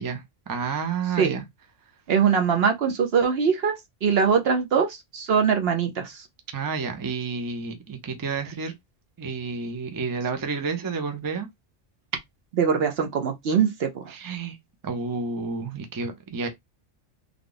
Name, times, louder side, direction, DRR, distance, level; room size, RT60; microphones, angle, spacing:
voice 1, 0.0-1.4 6.5-8.7 9.2-11.5 14.1-14.6 14.8-16.5, right 5 dB, 25° right, 0.5 m, -30 dB
voice 2, 2.1-3.8 4.0-6.3 12.5-14.1, right 6 dB, 60° right, 0.8 m, -22 dB
3.3 x 2.3 x 3.8 m
omnidirectional pair, 1.3 m